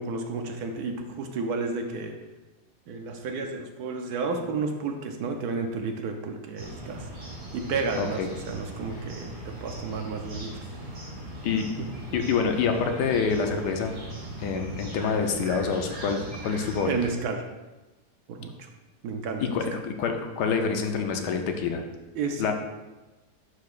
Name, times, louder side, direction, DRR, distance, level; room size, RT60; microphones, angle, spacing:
voice 1, 0.0-2.1 2.9-7.1 7.5-10.5 11.6-11.7 16.9-17.4 18.3-18.7 19.0-19.4 22.1-22.5, right 4 dB, 70° right, 4 dB, 1.2 m, -32 dB
sound 1, 6.6-17.1, right 2 dB, 50° right, 2.3 m, -39 dB
voice 2, 12.1-13.9 14.4-16.9 19.4-21.8 22.4-22.5, left 5 dB, 80° left, 4 dB, 1.3 m, -27 dB
10.5 x 4.7 x 2.4 m, 1.1 s
omnidirectional pair, 1.8 m